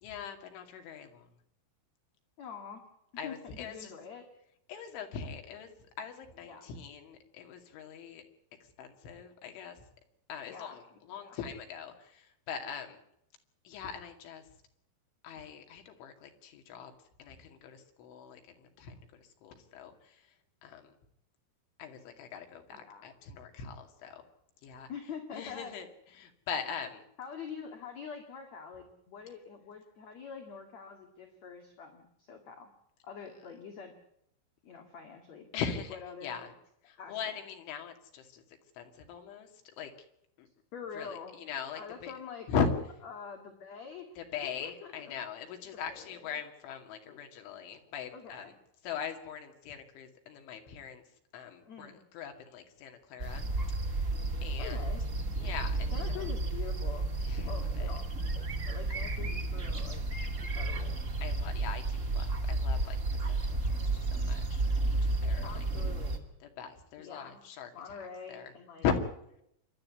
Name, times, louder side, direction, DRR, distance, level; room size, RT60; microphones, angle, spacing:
voice 1, 0.0-1.3 3.2-3.9 4.7-5.7 6.0-8.2 8.8-9.8 10.3-10.8 11.1-13.0 13.6-14.4 15.2-16.9 17.2-20.2 20.6-20.9 21.8-24.2 24.6-24.9 25.3-25.9 26.2-27.0 35.5-36.5 36.9-38.4 38.8-39.5 39.8-39.9 40.4-40.5 41.0-42.1 42.5-42.7 44.2-48.5 48.8-51.0 51.3-53.4 53.8-54.1 54.4-54.8 55.4-56.2 57.2-57.9 61.2-63.0 63.3-63.4 63.7-64.6 64.9-65.7 66.6-67.7 68.3-68.5 68.8-69.0, left 6 dB, 75° left, 5 dB, 4.7 m, -40 dB
voice 2, 2.4-2.8 3.2-4.3 6.4-6.7 10.5-11.4 22.7-23.1 24.9-25.7 27.2-32.7 33.0-33.9 34.6-36.5 37.0-37.3 40.7-41.4 41.7-42.5 43.0-45.1 45.7-46.4 47.0-47.2 48.1-48.5 51.6-52.0 54.6-55.0 55.9-57.1 57.5-58.1 58.3-60.0 60.4-61.0 65.4-66.3 67.0-67.4 67.7-68.9, left 6 dB, 50° left, 3 dB, 2.4 m, -45 dB
sound 1, 53.2-66.2, right 2 dB, 45° right, 0.9 m, -32 dB
27.0 x 12.0 x 9.5 m, 0.77 s
omnidirectional pair, 5.7 m